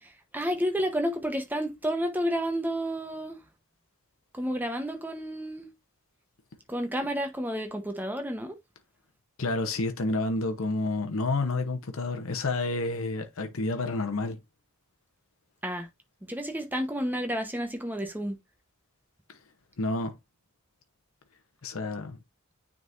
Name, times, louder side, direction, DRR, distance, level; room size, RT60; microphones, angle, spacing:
voice 1, 0.0-3.4 4.3-5.7 6.7-8.5 15.6-15.9 16.3-18.4, equal, 10° right, 1.0 m, -31 dB
voice 2, 9.4-14.4 19.3-19.4 19.8-20.2 21.6-22.2, left 2 dB, 65° left, 0.9 m, -29 dB
9.3 x 3.9 x 2.6 m
head